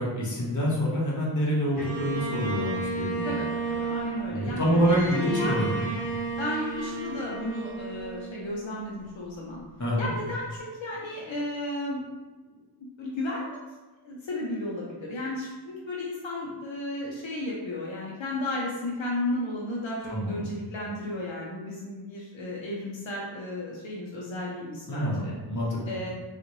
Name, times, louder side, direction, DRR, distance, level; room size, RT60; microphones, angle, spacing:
voice 1, 0.0-3.5 4.3-5.9 9.8-10.1 20.1-20.4 24.9-25.8, equal, 40° left, -5 dB, 1.1 m, -27 dB
Bowed string instrument, 1.8-9.0, right 3 dB, 20° left, 1.0 m, -33 dB
voice 2, 3.2-4.6 4.9-5.6 6.4-9.6 10.0-12.0 12.8-13.6 14.0-25.4 25.9-26.1, left 1 dB, 75° left, -4 dB, 0.7 m, -33 dB
3.6 x 2.4 x 3.0 m, 1.2 s
wide cardioid pair, 75°, 46 cm